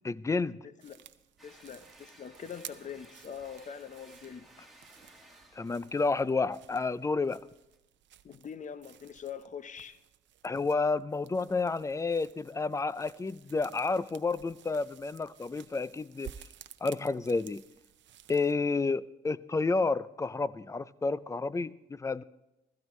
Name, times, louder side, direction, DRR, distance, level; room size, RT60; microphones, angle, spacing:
voice 1, 0.0-0.6 5.6-7.4 10.4-16.3 16.8-17.6 18.3-22.2, left 3 dB, 15° left, 0.4 m, -30 dB
voice 2, 0.6-1.0 1.4-4.5 8.2-10.0, left 7 dB, 40° left, 0.8 m, -43 dB
sound 1, 0.8-18.5, right 11 dB, 65° right, 0.6 m, -54 dB
sound 2, 1.4-7.8, right 1 dB, ahead, 2.1 m, -58 dB
15.5 x 15.0 x 3.2 m
cardioid pair, 90°, 20 cm